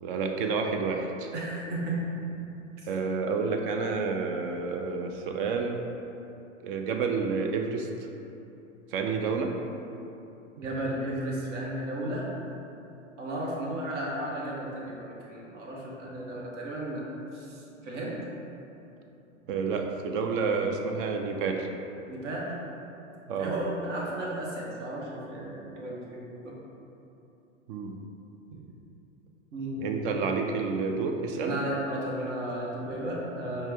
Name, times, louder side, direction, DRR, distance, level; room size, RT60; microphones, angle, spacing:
voice 1, 0.0-1.3 2.9-5.8 6.6-8.1 8.9-9.6 19.5-21.7 23.3-23.6 27.7-28.0 29.8-31.6, right 4 dB, 45° right, 3 dB, 0.5 m, -29 dB
voice 2, 1.3-2.1 10.6-12.3 13.2-17.1 17.3-18.2 22.1-22.6 23.4-26.6 29.5-29.8 31.4-33.7, right 1 dB, 65° right, -4 dB, 1.0 m, -34 dB
5.6 x 2.2 x 3.4 m, 2.9 s
hypercardioid pair, 100°, 38 cm